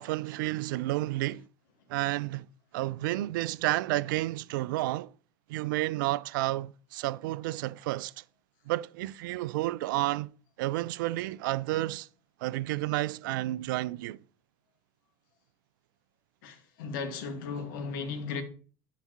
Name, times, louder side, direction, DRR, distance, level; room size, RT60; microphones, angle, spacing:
voice 1, 0.0-1.4 1.9-2.5 2.7-5.1 5.5-8.2 8.7-10.3 10.6-12.1 12.4-14.2, right 17 dB, 65° right, 0.4 m, -31 dB
voice 2, 16.4-18.4, left 5 dB, 65° left, 1.6 m, -36 dB
9.0 x 4.0 x 5.7 m
figure-of-eight pair, 65°, 12 cm